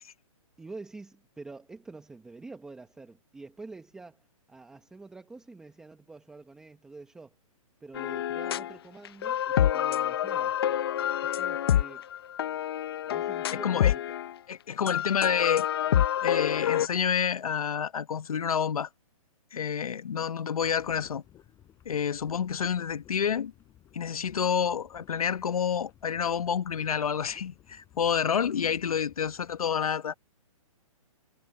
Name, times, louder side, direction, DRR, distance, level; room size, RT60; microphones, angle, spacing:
voice 1, 0.6-7.3 7.8-10.6 11.2-12.1 13.1-14.0 14.8-15.0, right 3 dB, 5° right, 1.1 m, -47 dB
sound 1, 7.9-8.7 9.0-14.3 14.9-16.9, left 11 dB, 45° left, 0.7 m, -27 dB
voice 2, 13.5-13.9 14.5-15.7 16.2-18.9 19.5-21.2 21.8-23.5 23.9-30.1, left 7 dB, 80° left, 1.3 m, -28 dB
sound 2, 20.6-29.6, left 12 dB, 15° left, 5.6 m, -57 dB
hypercardioid pair, 165°, 18 cm